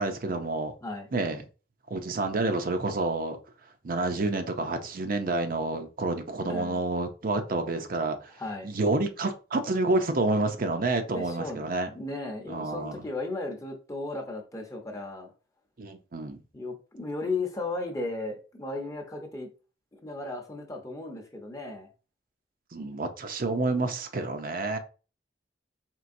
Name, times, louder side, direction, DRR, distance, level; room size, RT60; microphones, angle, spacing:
voice 1, 0.0-0.7 1.1-1.4 1.9-3.4 3.8-8.3 8.6-11.9 12.5-13.0 15.8-16.4 22.7-24.8, right 2 dB, 55° right, 0.6 m, -29 dB
voice 2, 6.4-6.8 8.4-8.7 11.1-11.6 11.9-15.3 16.5-19.5 19.9-21.9 23.5-23.6, left 2 dB, 20° left, 0.7 m, -35 dB
4.5 x 3.3 x 2.6 m
head